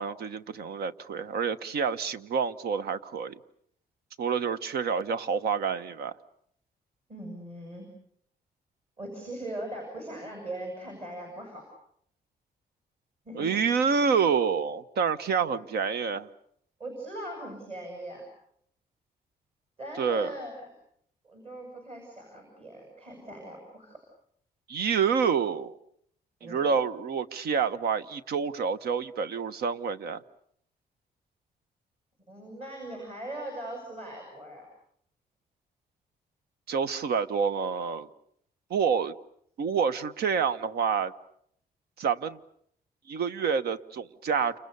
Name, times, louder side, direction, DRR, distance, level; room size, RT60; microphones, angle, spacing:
voice 1, 0.0-3.4 4.2-6.2 13.3-16.3 20.0-20.3 24.7-25.7 26.4-30.2 36.7-38.1 38.7-39.1 39.6-41.1 42.0-42.4 43.1-44.6, right 6 dB, 80° right, 1.2 m, -28 dB
voice 2, 7.1-7.9 9.0-11.6 13.2-13.6 15.4-15.6 16.8-18.2 19.8-20.7 21.2-24.0 26.4-26.6 32.3-34.7, right 1 dB, 40° right, 7.9 m, -40 dB
29.5 x 28.0 x 6.9 m
cardioid pair, 160°, 16 cm